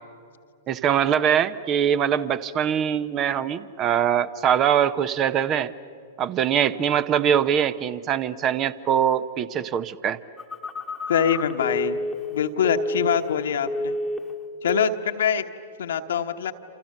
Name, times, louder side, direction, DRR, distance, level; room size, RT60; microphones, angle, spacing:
voice 1, 0.7-5.7 6.2-10.2, right 9 dB, 30° right, 16 dB, 0.8 m, -23 dB
Telephone, 10.4-13.4 13.7-14.3 14.7-15.0, left 1 dB, 10° left, 1.3 m, -30 dB
voice 2, 11.1-12.0 12.3-14.0 14.6-15.4 15.8-16.5, left 8 dB, 65° left, 6 dB, 1.2 m, -24 dB
28.5 x 28.0 x 6.6 m, 2.4 s
figure-of-eight pair, 105°, 0 cm